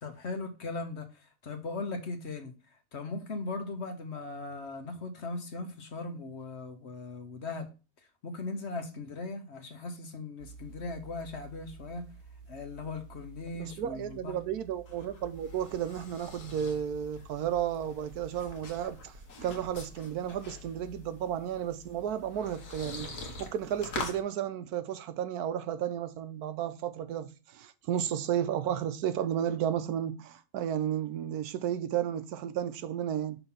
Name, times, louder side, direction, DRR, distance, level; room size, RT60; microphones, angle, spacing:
voice 1, 0.0-2.5 2.9-7.7 8.2-12.0 12.5-14.3, left 3 dB, 50° left, 1.2 m, -38 dB
sound 1, 10.4-20.4, right 5 dB, 55° right, 0.6 m, -53 dB
voice 2, 13.5-33.4, right 10 dB, 85° right, 1.2 m, -33 dB
sound 2, 14.6-24.2, left 3 dB, 90° left, 1.9 m, -44 dB
5.6 x 4.0 x 5.6 m
omnidirectional pair, 1.6 m